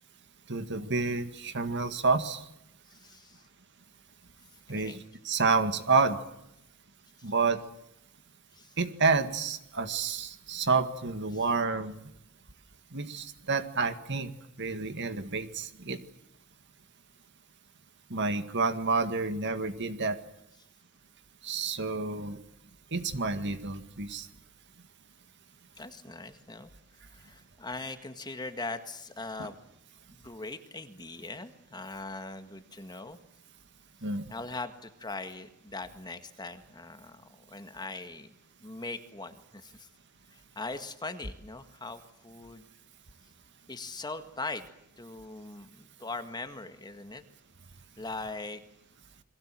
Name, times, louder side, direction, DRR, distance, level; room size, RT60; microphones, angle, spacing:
voice 1, 0.5-2.5 4.7-5.0 5.2-6.2 7.2-7.6 8.8-12.0 12.9-14.3 14.6-16.0 18.1-20.2 21.4-22.4 22.9-24.3 34.0-34.2, right 4 dB, 55° right, 9 dB, 2.0 m, -29 dB
voice 2, 2.9-3.4 4.7-5.0 8.5-8.7 11.3-11.4 25.8-26.7 27.0-29.6 30.1-33.2 34.3-38.3 38.6-39.9 40.3-42.7 43.7-44.7 45.0-47.2 48.0-48.6, left 3 dB, 20° left, 8 dB, 1.8 m, -41 dB
29.5 x 22.5 x 7.6 m, 0.79 s
head